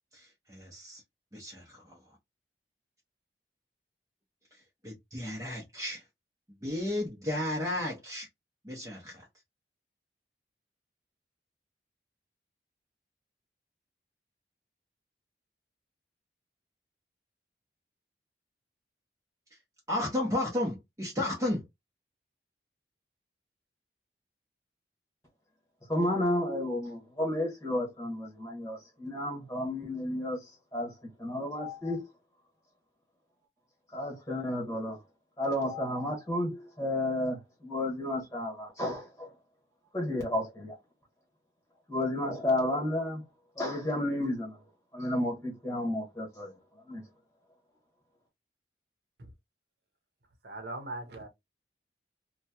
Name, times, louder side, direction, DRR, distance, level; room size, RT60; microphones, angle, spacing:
voice 1, 0.1-1.0 1.3-1.6 4.5-6.1 6.6-8.3 8.6-9.3 19.5-19.6 19.9-21.7, left 1 dB, 20° right, 0.8 m, -33 dB
voice 2, 25.9-32.1 33.9-35.0 35.4-39.3 39.9-40.8 41.9-43.2 43.5-44.6 44.9-46.5 46.8-47.0, left 1 dB, 15° left, 1.3 m, -32 dB
voice 3, 50.4-51.3, right 2 dB, 70° right, 0.8 m, -40 dB
2.9 x 2.2 x 2.7 m
head